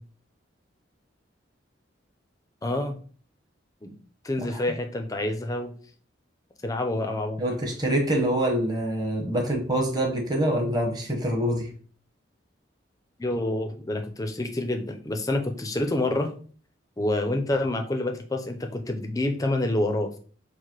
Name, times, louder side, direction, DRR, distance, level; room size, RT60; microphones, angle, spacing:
voice 1, 2.6-3.0 3.8-3.9 4.2-5.7 6.6-7.4 13.2-16.3 17.0-20.2, left 1 dB, 20° left, 5 dB, 0.5 m, -27 dB
voice 2, 7.4-11.7, right 1 dB, 20° right, 1 dB, 1.0 m, -25 dB
4.6 x 2.1 x 4.4 m, 0.42 s
head